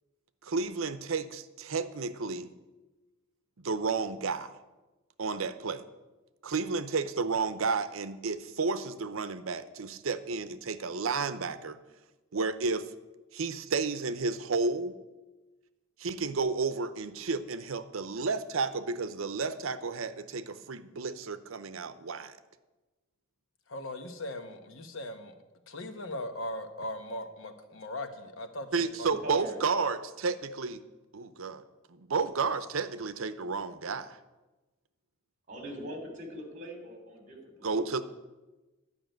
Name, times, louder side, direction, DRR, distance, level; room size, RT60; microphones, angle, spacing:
voice 1, 0.4-2.5 3.6-4.6 5.2-5.8 6.4-11.8 12.3-12.9 13.3-15.0 16.0-22.4 28.7-30.8 31.1-34.2 37.6-38.0, right 4 dB, 75° right, 13 dB, 0.7 m, -32 dB
voice 2, 23.7-25.3 25.7-29.4, left 1 dB, 70° left, 8 dB, 1.2 m, -39 dB
voice 3, 29.2-29.6 35.5-37.9, equal, 35° right, 3 dB, 2.9 m, -41 dB
11.5 x 5.9 x 9.1 m, 1.1 s
head